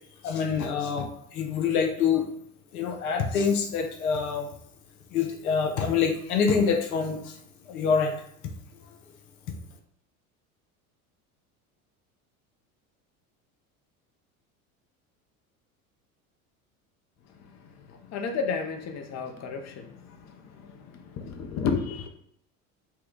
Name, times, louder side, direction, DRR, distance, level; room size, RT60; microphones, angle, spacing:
voice 1, 0.2-2.2 2.7-4.5 5.1-7.4 7.7-8.1, left 6 dB, 80° left, 3 dB, 1.0 m, -26 dB
voice 2, 18.1-20.0 21.2-22.1, left 5 dB, 40° left, 5 dB, 0.8 m, -31 dB
5.7 x 2.3 x 3.9 m, 0.69 s
hypercardioid pair, 80°, 43 cm